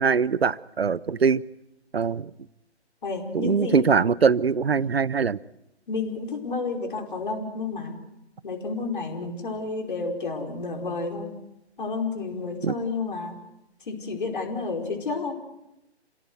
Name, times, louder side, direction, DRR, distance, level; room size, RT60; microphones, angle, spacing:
voice 1, 0.0-1.4 1.9-2.3 3.3-5.4 12.6-12.7, right 6 dB, 65° right, 21 dB, 0.9 m, -22 dB
voice 2, 3.0-3.8 4.7-4.9 5.9-8.0 8.4-11.3 11.8-13.3 13.8-15.3, left 4 dB, 50° left, 2 dB, 5.0 m, -30 dB
29.0 x 17.5 x 8.2 m, 0.88 s
figure-of-eight pair, 140°, 34 cm